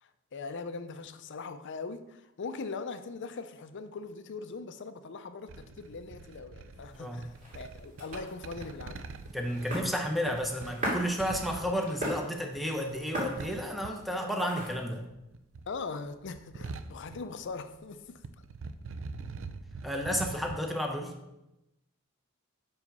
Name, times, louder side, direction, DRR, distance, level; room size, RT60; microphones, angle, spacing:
voice 1, 0.0-9.1 15.7-18.2, left 4 dB, 60° left, 10 dB, 0.5 m, -41 dB
sound 1, 5.5-14.8 15.0-17.9 18.2-20.6, right 4 dB, 65° right, 0.5 m, -44 dB
voice 2, 6.9-7.3 9.3-15.0 19.8-21.1, equal, ahead, 2 dB, 0.9 m, -32 dB
sound 2, 6.9-15.0, equal, 40° right, 2.7 m, -40 dB
5.7 x 5.0 x 5.4 m, 0.93 s
head